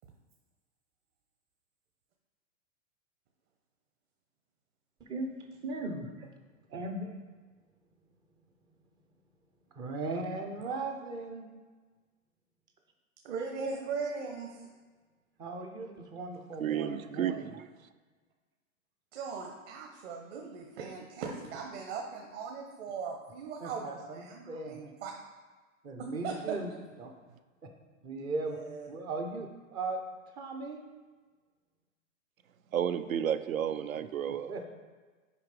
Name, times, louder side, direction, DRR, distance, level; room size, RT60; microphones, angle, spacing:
voice 1, 5.6-6.3 6.7-7.2 9.7-11.5 15.4-17.4 23.6-24.9 25.8-26.7 27.0-27.1 28.0-28.6 28.9-30.0 30.3-30.8 34.5-34.7, right 3 dB, 10° right, 4 dB, 0.3 m, -37 dB
voice 2, 13.2-14.7 19.1-25.1 26.0-26.8 28.1-28.2 28.5-28.9, right 5 dB, 55° right, 1 dB, 1.1 m, -39 dB
voice 3, 16.6-17.7 32.7-34.5, right 9 dB, 85° right, 11 dB, 0.6 m, -32 dB
6.6 x 5.0 x 5.0 m, 1.4 s
hypercardioid pair, 115°, 40 cm